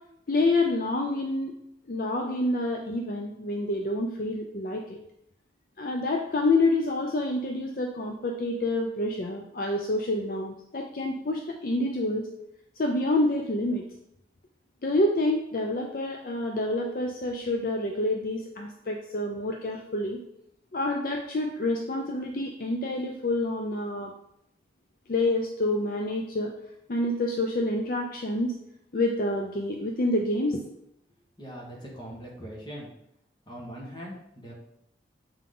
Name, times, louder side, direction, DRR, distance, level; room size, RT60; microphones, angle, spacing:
voice 1, 0.3-1.5 1.9-5.0 5.8-12.3 12.8-13.8 14.8-20.2 20.7-24.1 25.1-26.5 26.9-28.5 28.9-30.6, left 2 dB, 50° left, 2 dB, 0.5 m, -28 dB
voice 2, 31.4-32.9 33.5-34.5, equal, 25° left, -3 dB, 1.4 m, -41 dB
7.0 x 3.7 x 3.8 m, 0.78 s
head